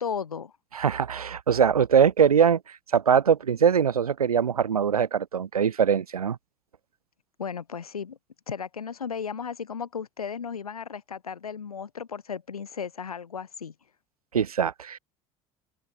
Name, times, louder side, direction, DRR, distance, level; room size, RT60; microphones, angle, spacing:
voice 1, 0.0-0.5 7.4-8.2 8.5-13.7, left 6 dB, 90° left, 0.6 m, -35 dB
voice 2, 0.7-6.4 14.3-15.0, right 7 dB, 85° right, 0.9 m, -22 dB
figure-of-eight pair, 60°, 18 cm